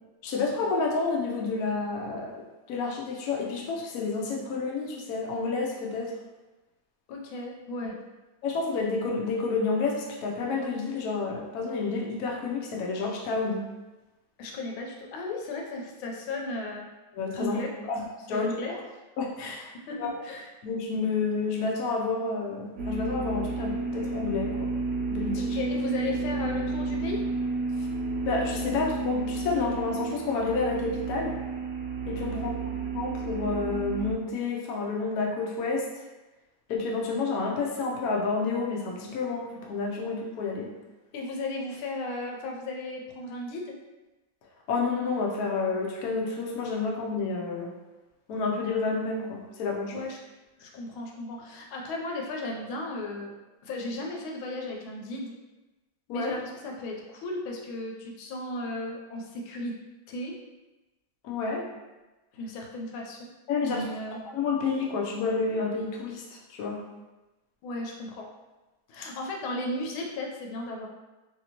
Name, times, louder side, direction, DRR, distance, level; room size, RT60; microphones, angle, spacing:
voice 1, 0.2-6.1 8.4-10.0 10.2-13.6 17.1-17.6 17.9-18.8 19.2-19.7 20.0-20.1 20.6-24.7 25.1-25.6 28.2-31.4 32.1-32.5 32.9-35.9 36.7-40.7 44.7-47.7 48.3-50.0 56.1-56.3 61.2-61.7 63.5-63.8 64.3-66.8, left 4 dB, 70° left, -1 dB, 0.8 m, -29 dB
voice 2, 7.1-8.0 14.4-16.9 17.4-17.7 18.3-18.8 19.9-20.5 25.4-27.2 32.3-32.5 41.1-43.7 49.9-50.2 50.6-53.3 53.6-55.3 56.1-59.7 60.1-60.4 62.4-63.2 63.6-64.2 67.6-68.3 68.9-70.9, left 2 dB, 90° left, 0 dB, 1.4 m, -35 dB
sound 1, 22.8-34.1, right 3 dB, 75° right, 0.9 m, -31 dB
3.2 x 2.7 x 2.8 m, 1.1 s
omnidirectional pair, 2.2 m